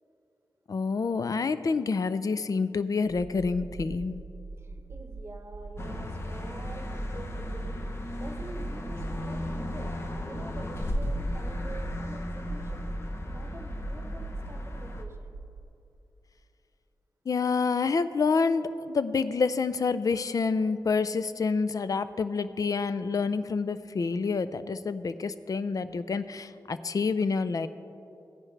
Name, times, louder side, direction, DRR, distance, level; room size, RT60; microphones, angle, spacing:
voice 1, 0.7-4.2 17.3-27.7, left 4 dB, 50° left, 13 dB, 0.4 m, -28 dB
sound 1, 3.0-15.6, right 3 dB, 60° right, 0.7 m, -43 dB
voice 2, 4.6-9.9 10.2-12.9 13.3-15.3, right 2 dB, 35° right, 5 dB, 1.0 m, -46 dB
sound 2, 5.8-15.0, left 1 dB, 35° left, 0.8 m, -35 dB
15.5 x 9.7 x 3.3 m, 2.8 s
wide cardioid pair, 80°, 8 cm